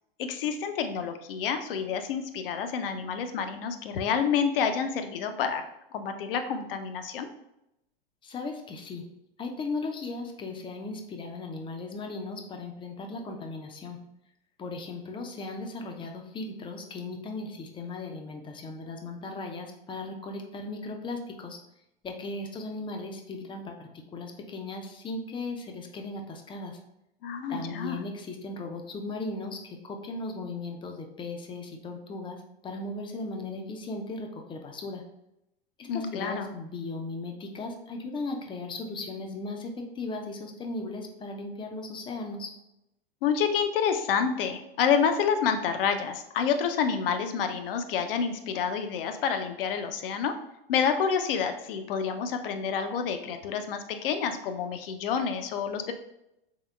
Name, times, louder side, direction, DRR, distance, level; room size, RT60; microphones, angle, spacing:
voice 1, 0.2-5.6 5.9-7.3 27.2-28.0 35.8-36.5 43.2-50.4 50.7-55.9, left 6 dB, 65° left, 8 dB, 0.5 m, -28 dB
voice 2, 8.2-9.0 9.4-14.0 14.6-21.6 22.0-26.8 27.5-35.0 35.8-42.5, left 3 dB, 15° left, 3 dB, 0.4 m, -37 dB
3.6 x 3.5 x 2.3 m, 0.85 s
hypercardioid pair, 95°, 30 cm